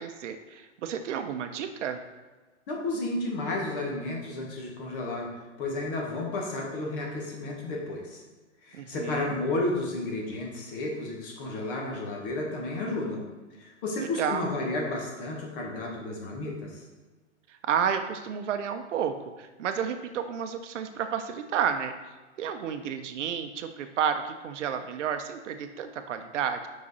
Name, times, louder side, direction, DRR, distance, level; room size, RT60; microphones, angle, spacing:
voice 1, 0.0-2.0 8.7-9.4 14.0-14.5 17.5-21.9 22.4-26.7, right 8 dB, 80° right, 7 dB, 0.6 m, -31 dB
voice 2, 2.7-5.3 5.6-8.2 8.6-13.2 13.6-16.8, left 2 dB, 45° left, -1 dB, 1.4 m, -32 dB
4.9 x 4.8 x 4.1 m, 1.3 s
hypercardioid pair, 125°, 36 cm